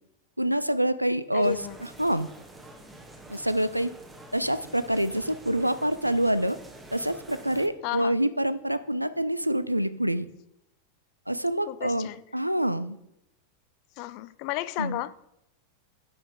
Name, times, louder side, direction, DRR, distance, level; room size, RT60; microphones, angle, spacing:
voice 1, 0.4-1.6 2.0-2.3 3.3-3.9 4.3-6.6 6.9-10.3 11.3-13.0 14.8-15.0, right 1 dB, 90° right, 0.4 m, -26 dB
voice 2, 1.3-1.8 7.8-8.2 11.7-12.2 14.0-15.1, left 16 dB, 45° left, 0.4 m, -33 dB
sound 1, 1.4-7.7, right 2 dB, 10° right, 1.2 m, -47 dB
10.5 x 5.7 x 3.6 m
figure-of-eight pair, 90°, 0 cm